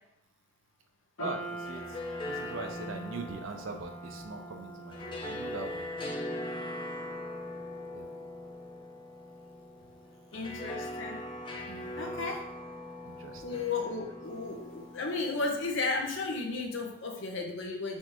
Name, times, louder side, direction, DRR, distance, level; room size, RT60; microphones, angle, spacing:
sound 1, 1.2-15.6, right 1 dB, 90° left, 1.2 m, -47 dB
voice 1, 1.2-2.0 2.2-5.9 7.9-8.1 11.7-12.3 13.0-13.6, right 3 dB, 75° right, 6 dB, 0.5 m, -42 dB
sound 2, 1.5-16.7, left 1 dB, 25° left, 0.4 m, -42 dB
voice 2, 10.3-11.2 12.0-12.5 13.4-18.0, left 3 dB, 65° left, 2 dB, 0.8 m, -34 dB
4.3 x 3.5 x 3.0 m, 0.80 s
head